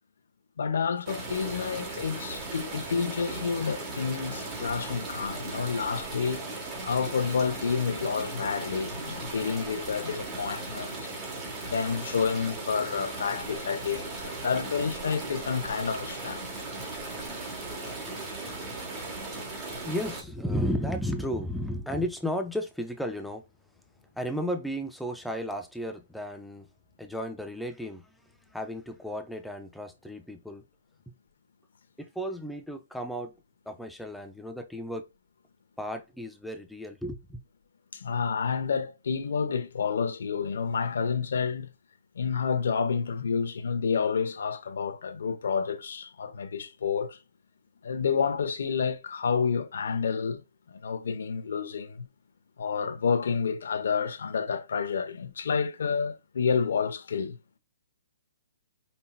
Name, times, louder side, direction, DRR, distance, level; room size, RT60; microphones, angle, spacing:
voice 1, 0.6-6.4 6.9-11.1 11.6-16.5 37.9-41.7 42.2-47.2 47.8-50.4 50.7-52.1 52.6-57.4, left 6 dB, 70° left, 0.8 m, -29 dB
sound 1, 1.1-20.2, right 2 dB, 20° right, 1.2 m, -37 dB
voice 2, 19.9-23.4 24.1-26.7 27.0-28.2 28.5-30.6 32.0-33.3 33.7-35.1 35.8-37.4, equal, ahead, 0.4 m, -34 dB
5.4 x 2.7 x 2.2 m
hypercardioid pair, 160°, 0 cm